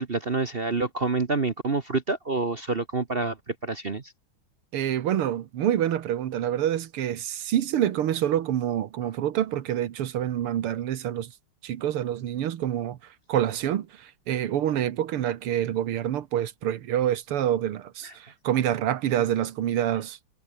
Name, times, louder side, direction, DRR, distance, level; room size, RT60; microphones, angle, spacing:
voice 1, 0.0-4.0 18.0-18.1, right 3 dB, 35° right, 1.1 m, -27 dB
voice 2, 4.7-11.3 11.6-13.0 13.3-20.3, right 11 dB, 85° right, 2.1 m, -27 dB
omnidirectional pair, 2.4 m